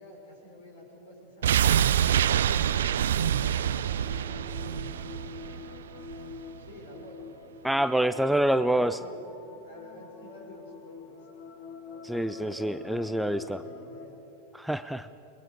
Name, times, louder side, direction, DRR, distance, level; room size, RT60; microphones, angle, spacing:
voice 1, 0.0-1.8 2.5-4.5 6.6-7.3 8.1-9.1 9.6-11.1 12.1-12.7 13.0-14.2, left 1 dB, 60° left, 0 dB, 6.3 m, -49 dB
sound 1, 1.4-6.4 6.7-6.8, right 9 dB, 60° right, 0.5 m, -26 dB
sound 2, 3.9-14.1, left 5 dB, 45° left, 1.8 m, -45 dB
voice 2, 7.6-9.0 12.0-13.6 14.5-15.1, right 1 dB, ahead, 12 dB, 0.5 m, -26 dB
29.5 x 21.0 x 4.9 m, 2.7 s
figure-of-eight pair, 90°, 0 cm